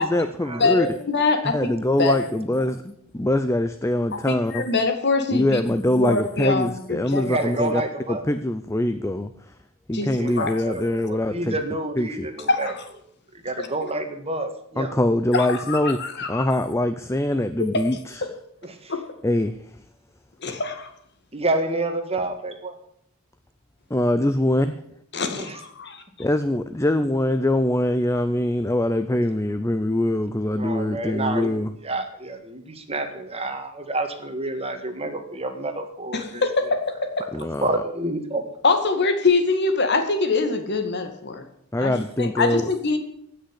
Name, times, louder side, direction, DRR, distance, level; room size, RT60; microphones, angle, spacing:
voice 1, 0.0-0.9 1.5-4.6 5.3-7.8 8.1-9.3 9.9-11.6 12.0-12.3 14.8-16.0 16.3-18.2 19.2-19.6 23.9-24.7 26.2-31.7 37.3-37.8 41.7-42.7, left 1 dB, 15° left, 10 dB, 0.6 m, -23 dB
voice 2, 0.6-1.7 2.0-2.3 2.6-2.7 4.1-5.6 5.9-7.5 9.9-10.1 10.4-10.5 12.5-12.8 13.6-13.7 15.3-16.5 17.7-17.8 18.9-19.0 20.4-20.9 25.1-26.0 36.1-37.3 38.6-41.4 41.8-43.0, left 3 dB, 50° left, 7 dB, 2.0 m, -24 dB
voice 3, 7.2-8.2 9.9-12.7 13.4-14.9 18.6-18.9 21.3-22.7 25.4-25.5 30.5-36.4 37.6-38.4, right 2 dB, 25° right, 7 dB, 1.7 m, -29 dB
16.0 x 6.6 x 9.9 m, 0.70 s
head